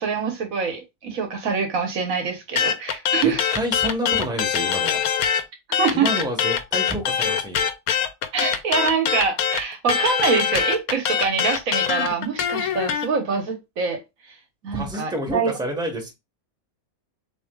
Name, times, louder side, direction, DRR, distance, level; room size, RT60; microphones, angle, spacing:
voice 1, 0.0-3.4 5.8-6.1 8.3-14.0 14.6-15.5, right 5 dB, 70° right, 1.4 m, -25 dB
sound 1, 2.6-5.4 5.7-13.1, left 8 dB, 85° left, 1.1 m, -23 dB
voice 2, 3.2-5.0 5.9-7.7 14.7-16.1, equal, 5° right, 1.2 m, -29 dB
7.0 x 3.0 x 2.3 m
omnidirectional pair, 1.5 m